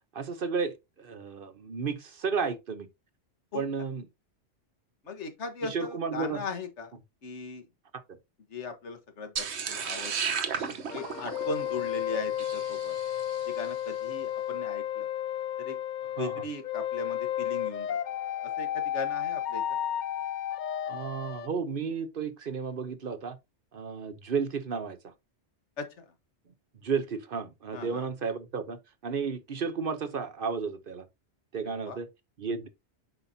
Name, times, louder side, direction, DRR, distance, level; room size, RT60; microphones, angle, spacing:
voice 1, 0.1-2.9 3.5-4.0 5.7-6.4 16.2-16.3 20.9-23.4 23.7-25.1 26.8-31.1 31.5-32.1 32.4-32.7, right 5 dB, 55° right, 0.9 m, -33 dB
voice 2, 5.0-6.9 7.2-7.7 8.5-10.4 10.9-13.0 13.4-15.1 15.6-15.8 16.1-18.0 18.4-19.8 25.8-26.1 27.7-28.1 31.6-32.0, left 4 dB, 75° left, 1.5 m, -38 dB
sound 1, 9.4-13.7, right 6 dB, 70° right, 1.2 m, -34 dB
sound 2, 10.9-21.5, left 11 dB, 60° left, 0.5 m, -33 dB
7.8 x 5.7 x 2.7 m
omnidirectional pair, 1.2 m